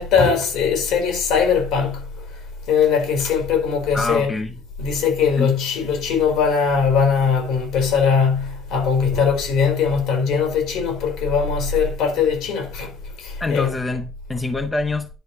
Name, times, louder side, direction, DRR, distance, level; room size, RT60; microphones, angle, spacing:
voice 1, 0.0-2.1 2.7-4.3 4.8-12.9 13.2-13.7, left 6 dB, 80° left, 4.3 m, -20 dB
voice 2, 3.9-4.5 5.4-5.5 13.4-15.1, left 3 dB, 15° left, 1.0 m, -25 dB
10.5 x 4.4 x 7.1 m
cardioid pair, 150°, 0 cm